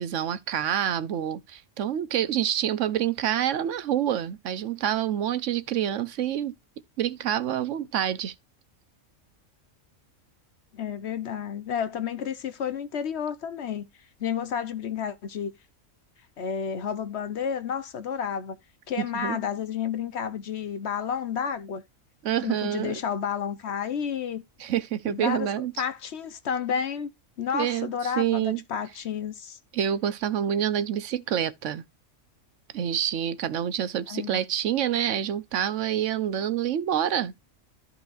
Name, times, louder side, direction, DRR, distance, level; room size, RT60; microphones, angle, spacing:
voice 1, 0.0-6.5 7.0-8.3 19.1-19.4 22.2-23.0 24.6-25.7 27.5-27.9 28.2-28.6 29.7-31.8 32.7-37.3, right 10 dB, 70° right, 1.0 m, -27 dB
voice 2, 10.7-13.9 14.2-15.5 16.4-18.6 18.9-21.8 22.4-24.4 25.0-27.1 27.4-29.6 34.1-34.4, left 7 dB, 60° left, 1.0 m, -31 dB
13.5 x 4.7 x 2.4 m
omnidirectional pair, 1.4 m